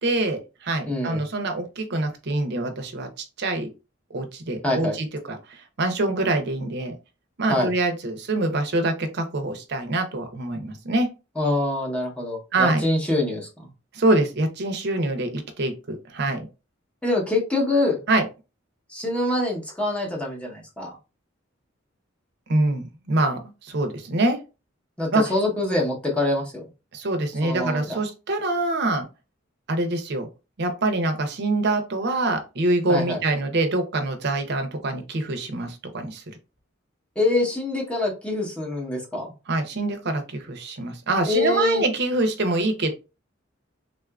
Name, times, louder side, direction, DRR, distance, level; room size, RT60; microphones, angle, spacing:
voice 1, 0.0-3.7 4.1-6.9 7.4-11.1 12.5-12.8 13.9-16.5 18.1-18.2 22.5-24.4 25.1-25.2 26.9-29.0 29.7-30.3 30.6-36.2 39.5-42.9, right 2 dB, 55° right, 6 dB, 0.7 m, -25 dB
voice 2, 0.9-1.2 4.6-5.0 7.5-7.7 11.4-13.7 17.0-18.0 18.9-21.0 25.0-26.6 27.4-28.0 32.9-33.2 37.2-39.3 41.3-41.8, left 2 dB, 5° left, -2 dB, 0.8 m, -25 dB
3.7 x 2.4 x 2.2 m, 0.29 s
head